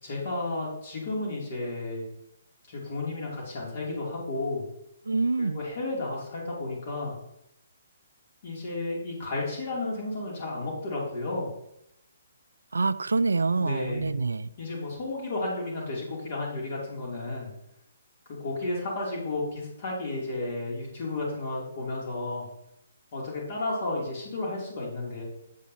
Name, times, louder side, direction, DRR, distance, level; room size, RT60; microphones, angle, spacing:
voice 1, 0.0-2.0 2.7-4.6 5.4-7.1 8.4-11.5 13.6-14.1 14.6-17.5 18.4-22.5 23.1-25.2, left 2 dB, 45° left, -4 dB, 2.6 m, -32 dB
voice 2, 5.1-5.6 12.7-14.5, right 3 dB, 80° right, 16 dB, 0.4 m, -26 dB
8.2 x 8.2 x 2.8 m, 0.80 s
figure-of-eight pair, 135°, 0 cm